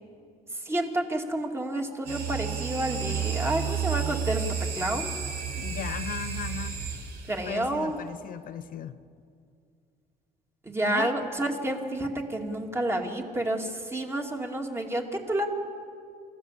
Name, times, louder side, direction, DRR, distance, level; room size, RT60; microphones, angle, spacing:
voice 1, 0.6-4.4 4.8-5.2 7.3-8.0 10.6-15.5, right 1 dB, 15° right, 2.6 m, -29 dB
sound 1, 2.1-7.6, right 7 dB, 70° right, 4.5 m, -32 dB
voice 2, 5.5-6.8 7.4-9.0 10.8-11.2, left 9 dB, 55° left, 0.8 m, -37 dB
27.0 x 15.0 x 7.6 m
cardioid pair, 110°, 17 cm